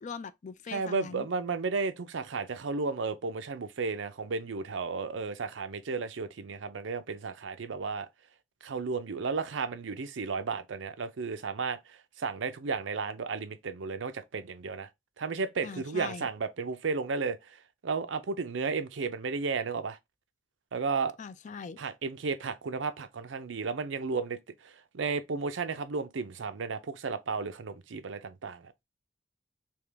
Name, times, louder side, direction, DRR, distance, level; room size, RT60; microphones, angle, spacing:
voice 1, 0.0-1.3 15.6-16.3 21.2-21.8, left 5 dB, 40° left, 0.4 m, -41 dB
voice 2, 0.7-8.1 8.6-14.9 15.2-17.4 17.8-20.0 20.7-21.1 21.8-24.4 24.6-28.7, right 4 dB, 90° right, 0.6 m, -33 dB
3.6 x 2.9 x 3.3 m
head